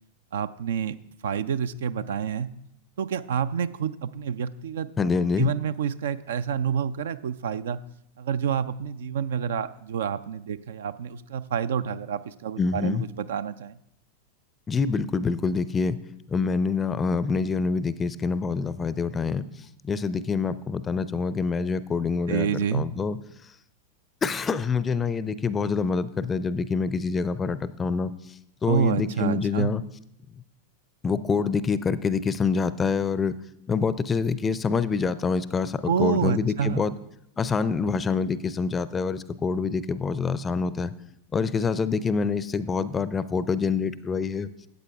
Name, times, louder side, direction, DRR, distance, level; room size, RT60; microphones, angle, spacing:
voice 1, 0.3-1.0 1.2-2.5 3.0-4.9 5.4-7.8 8.2-13.8 22.3-22.9 28.7-29.7 35.8-36.9, right 7 dB, 60° right, 13 dB, 0.4 m, -28 dB
voice 2, 5.0-5.5 12.6-13.0 14.7-16.0 16.3-19.5 19.8-23.2 24.2-28.1 28.6-29.8 31.0-33.4 33.7-36.9 37.4-40.9 41.3-44.5, left 5 dB, 20° left, 15 dB, 0.5 m, -26 dB
13.0 x 8.1 x 3.5 m, 0.78 s
figure-of-eight pair, 90°, 0 cm